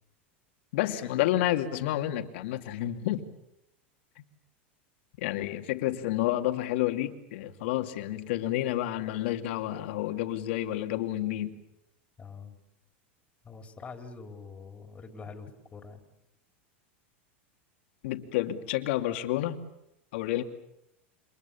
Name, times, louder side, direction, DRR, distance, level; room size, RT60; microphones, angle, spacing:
voice 1, 0.7-3.2 5.2-11.6 18.0-19.6 20.1-20.4, left 14 dB, 70° left, 2.7 m, -30 dB
voice 2, 12.2-12.5 13.4-16.0, left 4 dB, 20° left, 4.1 m, -45 dB
29.5 x 26.0 x 7.2 m
supercardioid pair, 125°, 6 cm